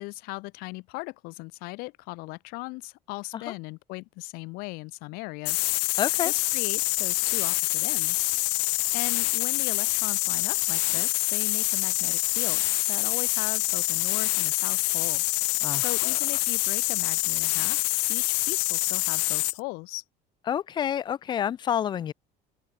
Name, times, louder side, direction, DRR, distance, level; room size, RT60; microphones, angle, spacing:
voice 1, 0.0-5.7 6.2-8.3 8.9-12.6 12.9-17.8 18.1-20.0, left 25 dB, 65° left, 2.1 m, -38 dB
sound 1, 5.4-19.6, left 38 dB, 90° left, 0.7 m, -26 dB
voice 2, 6.0-6.3 15.6-16.2 20.5-22.1, left 9 dB, 25° left, 1.2 m, -29 dB
open air
cardioid pair, 180°, 17 cm